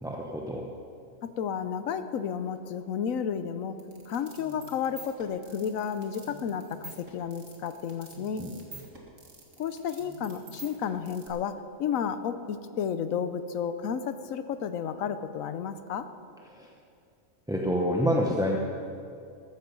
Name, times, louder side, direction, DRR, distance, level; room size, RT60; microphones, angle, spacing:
voice 1, 0.0-0.7 8.4-8.5 16.5-16.7 17.5-18.6, equal, 5° right, -1 dB, 0.7 m, -27 dB
voice 2, 1.2-3.8 4.1-8.5 9.6-16.1, left 7 dB, 90° left, 11 dB, 1.1 m, -32 dB
sound 1, 3.8-11.3, right 2 dB, 75° right, 2.2 m, -48 dB
14.0 x 13.5 x 5.4 m, 2.5 s
omnidirectional pair, 1.4 m